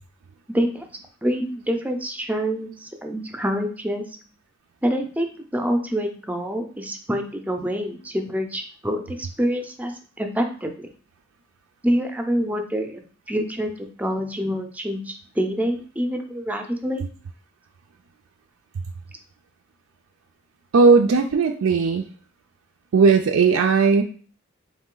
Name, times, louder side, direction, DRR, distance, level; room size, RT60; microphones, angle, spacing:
voice 1, 0.5-0.9 1.2-4.0 4.8-10.9 11.8-13.0 13.3-17.1, equal, 10° right, 5 dB, 0.5 m, -26 dB
voice 2, 20.7-22.0 22.9-24.0, right 4 dB, 70° right, 4 dB, 0.4 m, -17 dB
4.1 x 3.1 x 3.7 m, 0.42 s
head